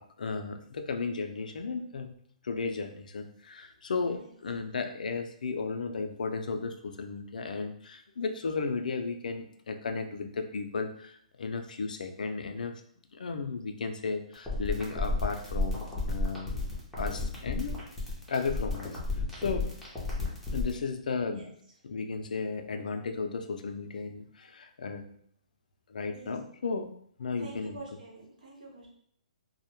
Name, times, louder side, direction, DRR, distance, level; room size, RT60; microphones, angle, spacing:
voice 1, 0.0-2.1 2.4-12.7 13.1-16.5 17.0-17.8 18.3-19.0 19.3-19.7 20.5-21.5 21.8-25.0 25.9-27.8, left 4 dB, 80° left, 7 dB, 0.3 m, -34 dB
sound 1, 14.3-20.7, left 3 dB, ahead, 0.6 m, -32 dB
voice 2, 27.4-28.9, right 2 dB, 75° right, -2 dB, 0.9 m, -47 dB
2.1 x 2.1 x 2.9 m, 0.63 s
hypercardioid pair, 150°, 4 cm